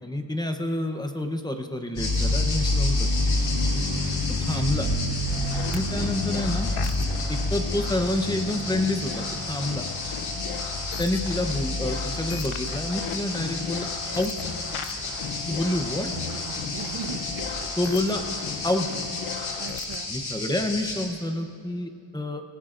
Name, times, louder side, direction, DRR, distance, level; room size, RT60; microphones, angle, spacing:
voice 1, 0.0-3.1 4.4-4.9 5.7-6.7 7.3-9.9 11.0-13.9 14.1-14.3 15.5-16.1 17.8-18.2 18.6-18.9 20.1-22.4, left 1 dB, 10° left, 5 dB, 0.8 m, -28 dB
sound 1, 2.0-21.1, left 2 dB, 50° left, 2.7 m, -29 dB
sound 2, 5.2-20.0, left 7 dB, 85° left, 0.8 m, -37 dB
voice 2, 16.1-17.7 19.6-20.1, right 7 dB, 70° right, 8 dB, 1.0 m, -39 dB
26.5 x 16.5 x 2.5 m, 2.5 s
wide cardioid pair, 175°, 50 cm